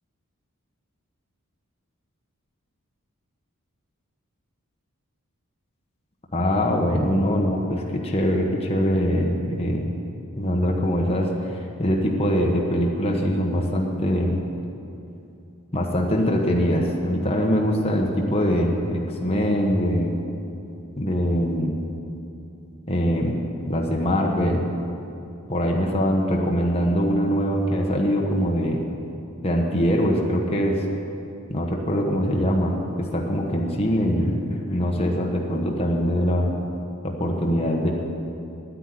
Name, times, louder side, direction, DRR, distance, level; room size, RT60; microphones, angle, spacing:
voice 1, 6.3-9.9 10.4-14.4 15.7-20.2 21.0-21.8 22.9-24.7 25.5-28.8 29.4-30.8 31.5-36.5 37.0-37.9, equal, 25° left, 0 dB, 1.2 m, -23 dB
9.8 x 9.2 x 9.8 m, 2.7 s
head